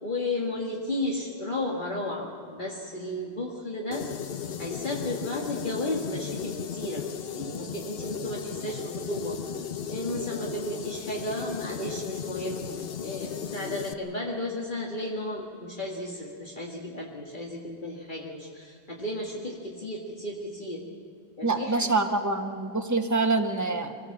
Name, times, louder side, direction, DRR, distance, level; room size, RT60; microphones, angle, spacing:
voice 1, 0.0-4.1 4.6-7.0 7.3-9.4 9.9-20.8 21.4-21.9, left 1 dB, 50° left, -2 dB, 2.0 m, -33 dB
sound 1, 3.9-13.9, left 7 dB, 65° left, 1.0 m, -36 dB
voice 2, 21.4-24.1, right 3 dB, 15° right, 5 dB, 1.3 m, -26 dB
24.0 x 17.5 x 7.2 m, 2.4 s
omnidirectional pair, 1.1 m